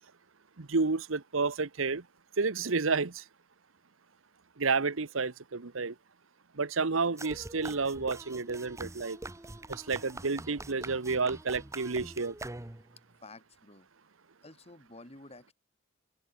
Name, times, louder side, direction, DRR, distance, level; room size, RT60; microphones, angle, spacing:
voice 1, 0.6-2.0 2.4-3.2 4.6-5.9 6.6-9.2 9.7-12.3, right 4 dB, 80° right, 1.1 m, -30 dB
sound 1, 7.2-13.0, right 2 dB, 15° right, 0.8 m, -44 dB
voice 2, 13.2-13.9 14.4-15.5, left 2 dB, 30° left, 3.4 m, -51 dB
open air
head